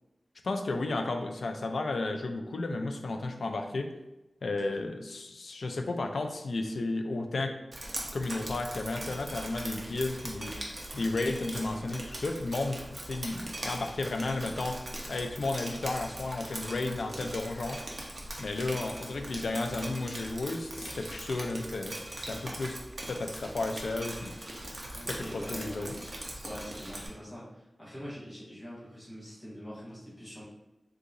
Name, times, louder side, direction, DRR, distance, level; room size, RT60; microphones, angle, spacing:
voice 1, 0.4-3.9 4.4-7.6 8.1-10.5 10.9-14.8 15.1-17.8 18.4-22.0 22.3-22.8 23.1-24.3 25.1-26.0, left 2 dB, 85° left, 5 dB, 0.3 m, -33 dB
Drip, 7.7-27.1, right 1 dB, 45° right, 0.7 m, -41 dB
voice 2, 24.9-25.9 26.4-30.4, equal, 5° left, -9 dB, 1.3 m, -44 dB
3.7 x 2.8 x 2.5 m, 0.97 s
wide cardioid pair, 90°, 0 cm